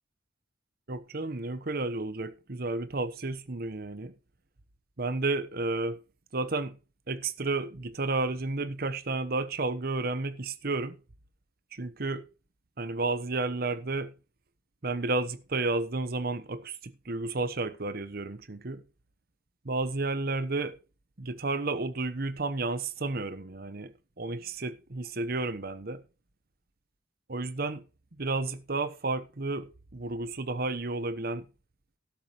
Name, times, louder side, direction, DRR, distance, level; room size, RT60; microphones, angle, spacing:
voice 1, 0.9-4.1 5.0-6.0 6.3-6.8 7.1-11.0 11.7-12.3 12.8-14.1 14.8-18.8 19.6-20.8 21.2-26.0 27.3-27.8 28.2-31.4, right 3 dB, 55° right, 1.0 m, -32 dB
13.0 x 12.0 x 3.1 m
head